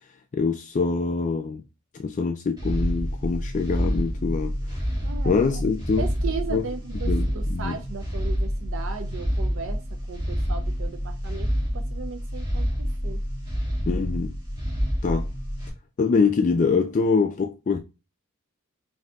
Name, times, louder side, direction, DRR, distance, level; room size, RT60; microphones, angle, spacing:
voice 1, 0.3-1.6 2.0-4.5 5.3-6.1 6.5-6.6 7.1-7.7 13.9-14.3 15.0-15.3 16.0-17.8, left 4 dB, 35° left, 0.3 m, -24 dB
sound 1, 2.6-15.7, equal, 20° right, 1.9 m, -28 dB
voice 2, 5.0-5.4 6.0-13.2, right 5 dB, 65° right, 0.5 m, -36 dB
5.7 x 2.7 x 2.3 m
head